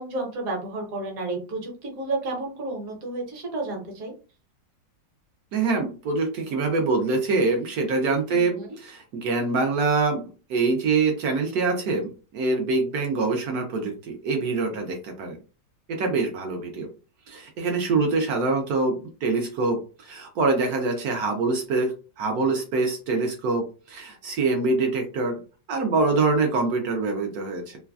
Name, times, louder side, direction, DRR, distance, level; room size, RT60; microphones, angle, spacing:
voice 1, 0.0-4.1 8.3-8.7, right 2 dB, 55° right, 1 dB, 1.2 m, -31 dB
voice 2, 5.5-10.2 10.5-15.4 15.9-16.9 17.3-25.4 25.7-27.8, right 3 dB, 70° right, 3 dB, 0.9 m, -25 dB
3.2 x 2.2 x 2.3 m, 0.35 s
omnidirectional pair, 2.0 m